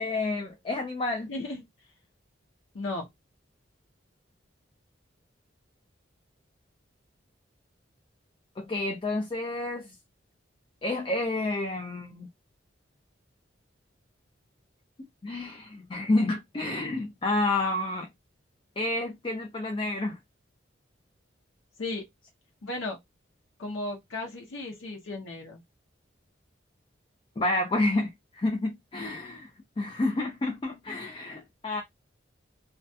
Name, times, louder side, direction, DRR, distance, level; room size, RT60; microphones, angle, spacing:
voice 1, 0.0-1.3 8.6-9.9 10.8-12.3 15.2-18.1 18.8-20.2 27.4-29.5 29.8-31.8, left 2 dB, 25° left, 0.3 m, -29 dB
voice 2, 1.3-1.6 2.7-3.1 21.8-22.0 22.6-23.0 23.6-25.6, left 2 dB, 90° left, 0.6 m, -35 dB
2.2 x 2.2 x 2.6 m
head